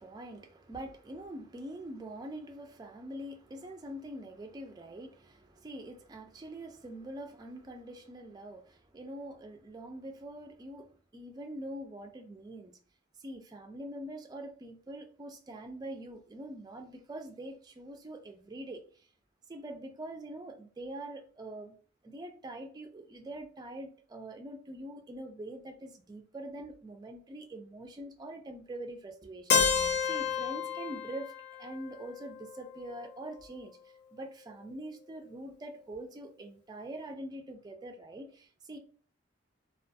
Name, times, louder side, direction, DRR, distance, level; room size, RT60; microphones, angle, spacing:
voice 1, 0.0-12.7 13.2-18.8 19.5-21.7 22.0-31.3 31.6-33.7 34.1-38.8, right 1 dB, 20° right, 0.3 m, -44 dB
Keyboard (musical), 29.5-33.4, left 6 dB, 55° left, 0.4 m, -31 dB
2.3 x 2.2 x 2.5 m
head